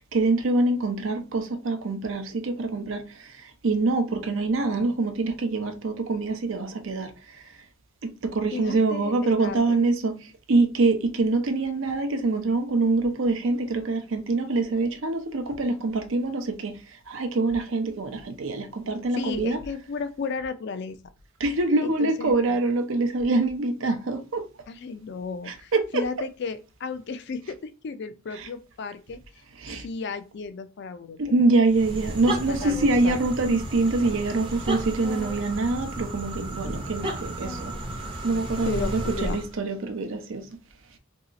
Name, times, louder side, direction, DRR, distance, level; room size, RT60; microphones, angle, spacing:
voice 1, 0.1-7.5 8.0-19.6 21.4-24.5 25.5-26.0 28.3-28.5 29.6-29.9 31.2-37.7 38.2-40.5, right 3 dB, 70° right, 0.6 m, -25 dB
voice 2, 8.5-9.6 19.1-21.0 21.8-22.6 24.7-29.2 29.8-31.2 32.3-33.2 38.7-39.4, left 5 dB, 55° left, 0.4 m, -34 dB
sound 1, 31.7-39.5, right 1 dB, 25° right, 0.6 m, -33 dB
2.8 x 2.3 x 3.9 m
head